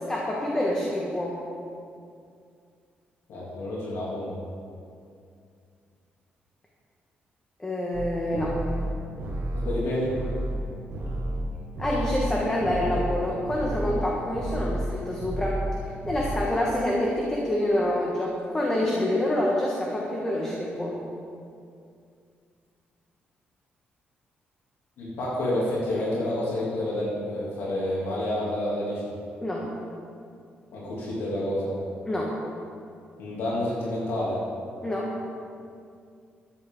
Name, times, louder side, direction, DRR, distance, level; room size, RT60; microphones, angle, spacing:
voice 1, 0.1-1.4 7.6-8.5 11.8-15.6 16.1-21.0 29.4-29.7 32.1-32.3 34.8-35.1, left 1 dB, 15° left, -3 dB, 1.6 m, -27 dB
voice 2, 3.3-4.4 9.5-10.2 25.0-29.0 30.7-31.8 33.2-34.4, left 1 dB, 90° left, -6 dB, 3.0 m, -29 dB
sound 1, 7.9-13.2 13.5-14.0 14.3-14.9 15.2-15.8 16.0-16.4, right 1 dB, 60° right, 2.0 m, -31 dB
14.0 x 10.5 x 3.9 m, 2.4 s
cardioid pair, 125°, 4 cm